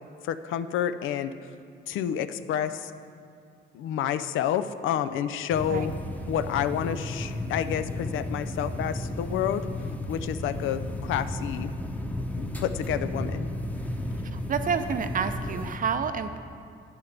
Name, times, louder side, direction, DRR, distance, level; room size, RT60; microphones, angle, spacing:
voice 1, 0.2-1.3 1.9-2.9 3.7-5.9 6.3-9.7 10.1-11.7 12.4-13.5, left 9 dB, 80° left, 12 dB, 0.5 m, -29 dB
sound 1, 5.5-15.8, left 1 dB, 5° left, 0.8 m, -33 dB
voice 2, 14.3-16.4, right 6 dB, 45° right, 10 dB, 0.6 m, -29 dB
10.5 x 9.7 x 3.4 m, 2.3 s
cardioid pair, 90°, 20 cm